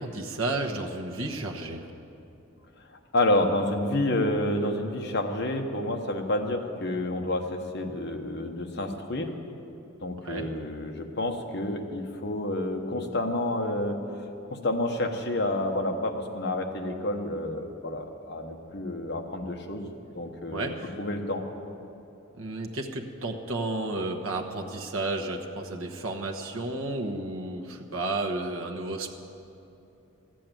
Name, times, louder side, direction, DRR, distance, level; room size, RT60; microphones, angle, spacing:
voice 1, 0.0-1.9 10.2-10.5 20.5-20.9 22.3-29.1, right 2 dB, 80° right, 1 dB, 1.2 m, -32 dB
voice 2, 3.1-9.3 10.0-14.2 14.5-19.9 20.2-20.7 21.0-21.4, left 1 dB, 50° left, 3 dB, 1.1 m, -29 dB
13.5 x 7.6 x 9.0 m, 2.8 s
head